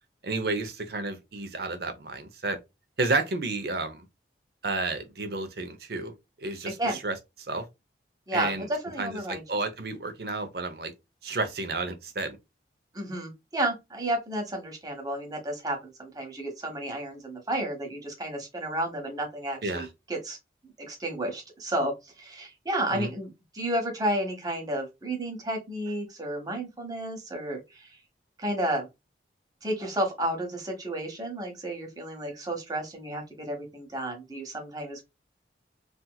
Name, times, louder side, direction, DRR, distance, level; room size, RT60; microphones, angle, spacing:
voice 1, 0.2-2.6 3.0-4.1 4.6-7.6 8.3-8.7 9.0-10.9 11.2-12.4 19.6-19.9 22.9-23.1, right 3 dB, 65° right, 0.7 m, -31 dB
voice 2, 8.3-9.4 12.9-20.4 20.9-23.3 23.5-28.0 28.4-28.9 29.6-35.0, right 1 dB, 20° right, 1.1 m, -32 dB
3.5 x 2.8 x 2.2 m
head